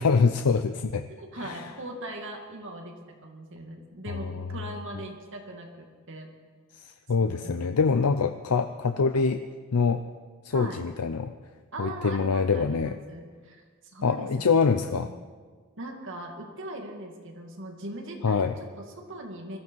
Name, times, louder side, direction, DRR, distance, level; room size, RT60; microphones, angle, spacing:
voice 1, 0.0-1.1 1.4-1.6 4.1-4.2 6.7-9.4 9.7-10.0 10.4-11.3 11.8-13.0 14.0-15.1 18.2-18.5, left 5 dB, 85° left, 9 dB, 0.6 m, -24 dB
voice 2, 1.2-6.3 7.2-8.2 10.5-10.8 11.7-15.1 15.8-19.6, right 1 dB, 60° right, 2 dB, 2.3 m, -40 dB
21.5 x 14.5 x 4.7 m, 1.5 s
head